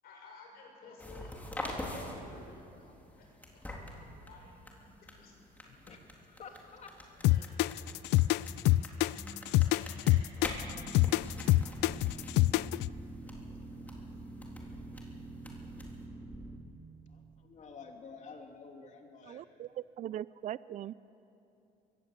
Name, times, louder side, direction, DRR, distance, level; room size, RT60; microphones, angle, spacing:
voice 1, 0.0-1.7 2.0-3.2 4.2-5.4 5.7-5.8 6.4-6.6 7.2-7.9 13.1-13.2 13.7-14.3, left 4 dB, 65° left, -1 dB, 7.1 m, -56 dB
sound 1, 1.0-16.1, left 1 dB, 10° left, 3.5 m, -46 dB
voice 2, 1.8-2.6 5.9-6.9 17.1-19.5, left 4 dB, 45° left, 3 dB, 3.1 m, -50 dB
sound 2, 7.2-12.9, left 18 dB, 90° left, 0.4 m, -25 dB
Boat Water vehicle, 10.6-16.6, right 2 dB, 10° right, 2.2 m, -46 dB
voice 3, 19.2-20.9, right 12 dB, 45° right, 18 dB, 0.4 m, -40 dB
22.5 x 17.0 x 8.1 m, 2.9 s
cardioid pair, 110°, 17 cm